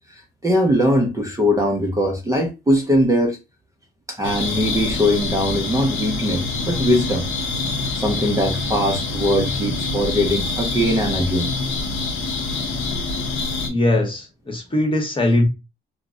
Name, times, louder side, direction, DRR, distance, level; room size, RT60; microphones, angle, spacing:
voice 1, 0.4-3.4 4.1-7.2 7.9-11.5, equal, 15° right, 0.5 m, -20 dB
sound 1, 4.2-13.7, left 3 dB, 85° left, 0.7 m, -26 dB
voice 2, 13.7-15.5, left 1 dB, 25° left, 1.0 m, -20 dB
2.2 x 2.0 x 3.6 m
cardioid pair, 90°, 20 cm